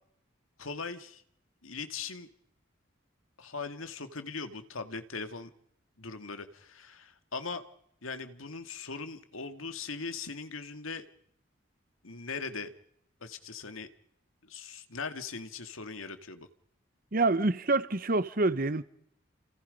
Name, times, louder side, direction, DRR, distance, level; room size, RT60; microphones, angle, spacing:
voice 1, 0.6-1.2 1.6-2.3 3.4-5.5 6.0-7.7 8.0-11.1 12.0-12.7 13.2-13.9 14.4-16.5, left 4 dB, 90° left, 2.1 m, -40 dB
voice 2, 17.1-18.8, right 2 dB, 45° right, 1.0 m, -26 dB
30.0 x 27.5 x 5.4 m
head